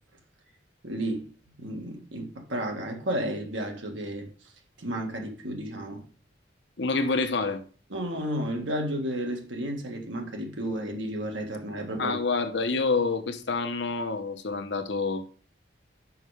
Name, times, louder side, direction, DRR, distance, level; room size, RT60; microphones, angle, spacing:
voice 1, 0.8-1.3 1.6-4.3 4.8-6.0 7.9-12.2, right 1 dB, 85° right, 1.7 m, -32 dB
voice 2, 6.8-7.6 12.0-15.2, left 4 dB, 70° left, 0.9 m, -27 dB
5.7 x 5.5 x 4.8 m
head